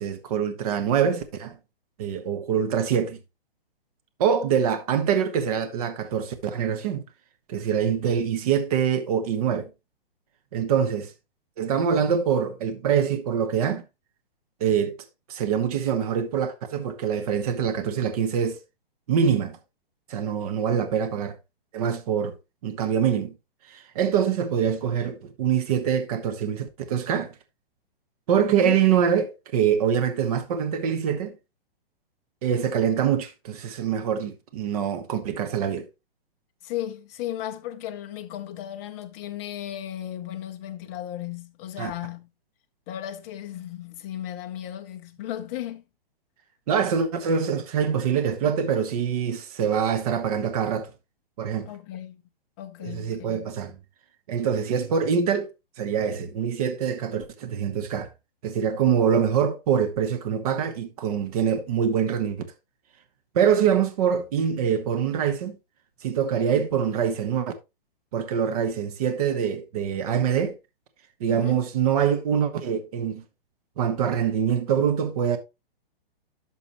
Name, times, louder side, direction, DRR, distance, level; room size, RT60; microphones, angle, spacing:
voice 1, 0.0-1.6 2.0-3.2 4.2-7.0 7.5-9.7 10.5-11.1 11.6-13.8 14.6-14.9 15.3-18.6 19.1-19.6 20.1-21.3 21.7-22.3 22.6-23.3 23.7-27.3 28.3-31.3 32.4-35.9 41.8-41.9 46.7-50.9 51.4-51.7 52.8-53.8 54.3-55.5 55.8-58.1 58.4-62.4 63.3-65.6 66.0-67.5 68.1-70.6 71.2-73.2 73.8-75.4, right 8 dB, 40° right, 1.2 m, -24 dB
voice 2, 36.6-42.3 42.9-45.8 51.7-52.2 52.6-53.5 71.3-71.6, left 12 dB, 15° left, 0.5 m, -35 dB
11.0 x 6.3 x 3.0 m
hypercardioid pair, 160°, 30 cm